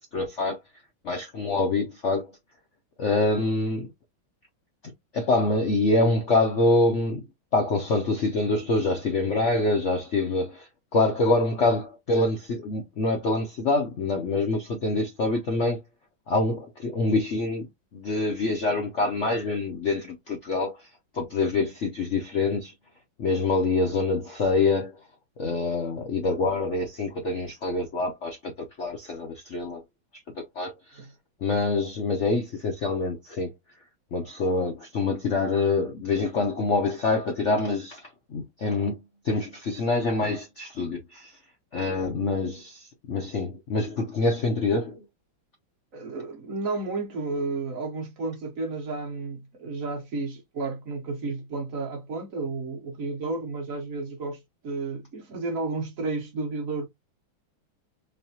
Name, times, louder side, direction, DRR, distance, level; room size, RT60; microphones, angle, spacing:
voice 1, 0.1-0.6 1.0-2.3 3.0-3.9 5.1-7.2 7.5-15.8 16.3-17.7 17.9-20.9 21.1-22.7 23.2-24.9 25.4-29.8 30.4-31.0 31.4-33.5 34.1-39.0 39.2-41.3 41.7-45.0, left 3 dB, 70° left, 0.6 m, -25 dB
voice 2, 45.9-56.9, right 3 dB, 50° right, 1.2 m, -32 dB
3.5 x 3.2 x 2.8 m
omnidirectional pair, 2.3 m